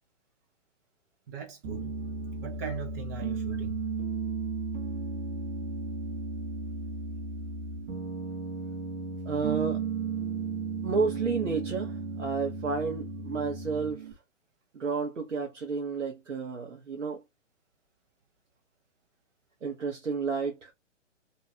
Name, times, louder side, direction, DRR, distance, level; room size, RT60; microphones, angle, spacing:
voice 1, 1.3-2.0 2.4-3.8, right 7 dB, 15° right, 0.4 m, -39 dB
Piano, 1.6-14.1, right 4 dB, 35° right, 1.4 m, -34 dB
voice 2, 9.2-9.8 10.8-14.1 14.7-17.2 19.6-20.7, right 4 dB, 80° right, 1.0 m, -31 dB
3.0 x 2.7 x 2.7 m
figure-of-eight pair, 125°, 37 cm